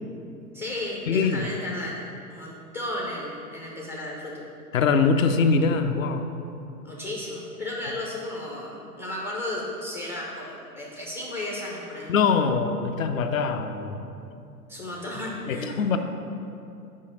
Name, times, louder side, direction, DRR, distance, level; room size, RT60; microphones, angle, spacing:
voice 1, 0.5-4.4 6.8-12.1 14.7-15.8, left 1 dB, 15° left, -3 dB, 0.4 m, -34 dB
voice 2, 1.1-1.5 4.7-6.3 12.1-14.0 15.5-16.0, left 5 dB, 60° left, 6 dB, 0.7 m, -23 dB
5.5 x 5.1 x 6.4 m, 2.7 s
figure-of-eight pair, 110°, 47 cm